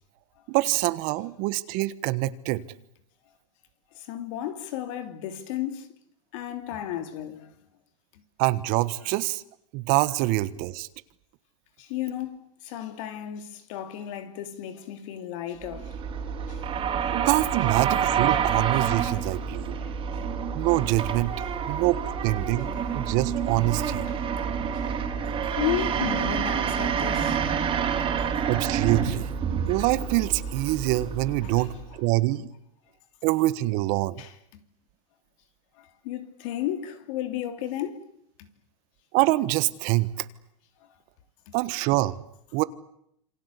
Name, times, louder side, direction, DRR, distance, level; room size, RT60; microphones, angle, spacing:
voice 1, 0.5-2.6 8.4-9.4 9.7-10.9 17.1-19.8 20.5-21.3 21.7-22.7 22.9-24.1 28.5-29.3 29.7-32.5 33.2-34.2 39.1-40.1 41.5-42.2 42.5-42.6, right 18 dB, 50° right, 1.4 m, -25 dB
voice 2, 3.9-5.9 6.3-7.5 8.1-8.2 11.8-15.9 16.5-16.6 19.1-19.2 24.1-25.1 25.6-27.6 28.0-28.1 31.4-31.7 34.2-34.6 35.8-38.0 38.4-38.5 41.5-41.6, left 11 dB, 60° left, 3.2 m, -34 dB
sound 1, 15.6-32.0, right 7 dB, 30° right, 4.4 m, -28 dB
27.5 x 25.0 x 8.4 m
supercardioid pair, 135°, 18 cm